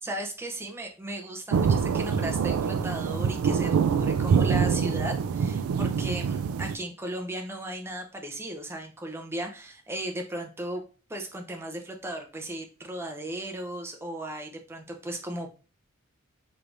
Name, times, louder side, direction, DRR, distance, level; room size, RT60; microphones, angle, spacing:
voice 1, 0.0-10.8 11.1-15.5, right 1 dB, 10° right, 3 dB, 0.6 m, -36 dB
sound 1, 1.5-6.8, right 6 dB, 80° right, 0.3 m, -25 dB
4.6 x 3.2 x 2.6 m, 0.35 s
head